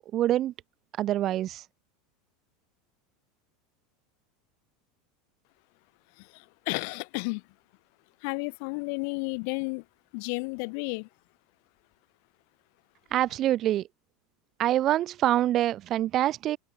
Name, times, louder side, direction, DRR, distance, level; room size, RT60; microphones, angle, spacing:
voice 1, 0.1-0.5 1.0-1.6 13.1-13.9 14.6-16.6, right 13 dB, 40° right, 5.2 m, -25 dB
voice 2, 6.2-7.4 8.2-9.8 10.1-11.1, left 37 dB, 60° left, 7.5 m, -32 dB
open air
supercardioid pair, 135°, 0 cm